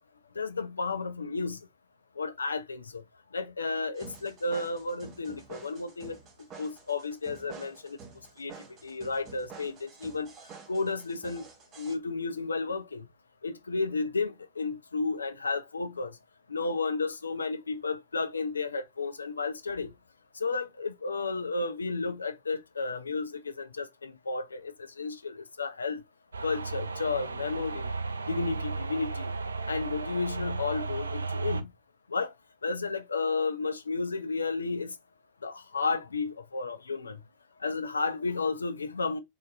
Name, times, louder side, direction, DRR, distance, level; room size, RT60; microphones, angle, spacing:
voice 1, 0.4-1.6 2.2-3.0 3.3-6.2 6.6-8.0 8.4-8.5 8.8-10.3 10.7-11.5 11.8-13.0 13.4-16.1 16.5-19.9 20.4-26.0 26.4-27.9 28.3-29.3 29.7-31.7 32.1-32.3 32.6-34.9 35.4-37.2 37.6-39.2, left 4 dB, 75° left, 0.4 m, -32 dB
sound 1, 4.0-12.0, right 5 dB, 35° right, 0.8 m, -49 dB
sound 2, 26.3-31.6, right 4 dB, 75° right, 0.3 m, -34 dB
3.6 x 2.6 x 2.2 m
figure-of-eight pair, 90°, 0 cm